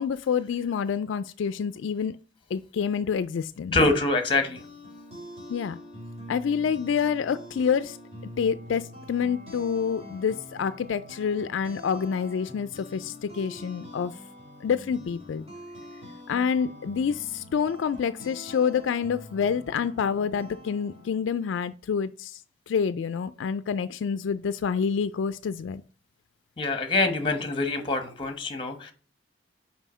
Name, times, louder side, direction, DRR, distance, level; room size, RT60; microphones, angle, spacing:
voice 1, 0.0-2.2 2.5-3.8 5.5-5.8 6.3-8.0 8.4-14.1 14.6-15.5 16.3-22.4 22.7-25.8, left 6 dB, 70° left, 0.3 m, -27 dB
voice 2, 3.7-4.6 26.6-28.9, left 2 dB, 25° left, 1.1 m, -25 dB
sound 1, 4.3-21.2, left 1 dB, 30° right, 2.7 m, -45 dB
5.6 x 4.9 x 6.0 m
head